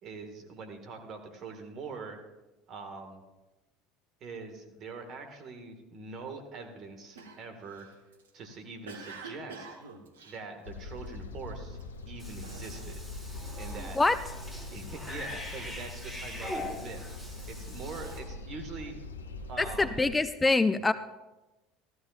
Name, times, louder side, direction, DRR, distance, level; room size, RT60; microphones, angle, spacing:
voice 1, 0.0-2.2 2.7-3.2 4.2-7.9 8.3-9.7 10.2-11.8 12.1-13.0 13.6-14.0 14.7-17.0 17.4-19.0 19.5-20.0, right 4 dB, 45° right, 5 dB, 1.9 m, -43 dB
Cough, 7.2-11.2 11.7-12.0 12.4-13.1 13.4-14.6 15.1-16.6, right 4 dB, 80° right, 1.2 m, -48 dB
sound 1, 10.6-20.2, left 2 dB, 85° left, 0.6 m, -42 dB
Cat / Bathtub (filling or washing), 12.2-18.2, left 1 dB, 15° right, 4.9 m, -42 dB
voice 2, 19.6-20.9, left 3 dB, 15° left, 13 dB, 0.4 m, -25 dB
14.5 x 14.0 x 2.5 m, 1.1 s
hypercardioid pair, 70°, 0 cm